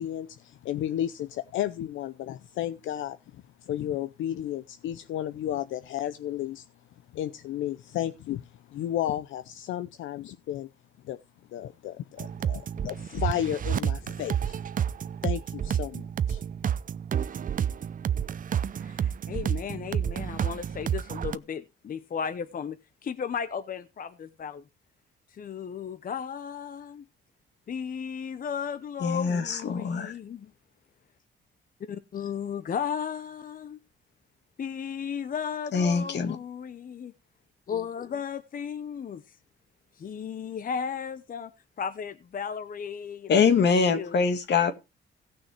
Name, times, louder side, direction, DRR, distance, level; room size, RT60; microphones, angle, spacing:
voice 1, 0.0-6.7 7.1-10.7 11.0-11.2 11.5-14.6 15.2-16.4, left 11 dB, 80° left, 0.7 m, -33 dB
sound 1, 12.2-21.4, right 9 dB, 45° right, 0.6 m, -30 dB
voice 2, 18.8-22.8 23.0-24.6 25.3-27.0 27.7-30.5 31.8-33.8 34.6-37.1 37.7-39.4 40.0-41.5 41.8-44.2, left 7 dB, 45° left, 0.9 m, -35 dB
voice 3, 29.0-30.1 35.7-36.4 43.3-44.7, left 5 dB, 60° left, 2.1 m, -23 dB
17.0 x 6.3 x 4.6 m
cardioid pair, 90°, 20 cm